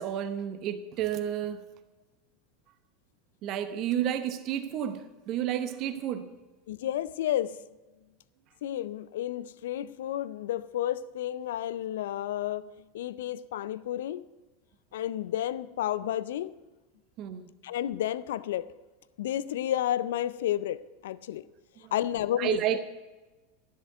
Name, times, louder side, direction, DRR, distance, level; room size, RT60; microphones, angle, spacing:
voice 1, 0.0-1.7 3.4-6.3 17.2-17.5 21.8-21.9 22.4-22.8, right 10 dB, 45° right, 10 dB, 0.9 m, -31 dB
voice 2, 6.7-7.6 8.6-14.3 14.9-16.5 17.6-18.7 19.2-21.5 21.9-22.6, left 12 dB, 70° left, 17 dB, 0.5 m, -31 dB
13.0 x 7.6 x 7.9 m, 1.2 s
hypercardioid pair, 85°, 0 cm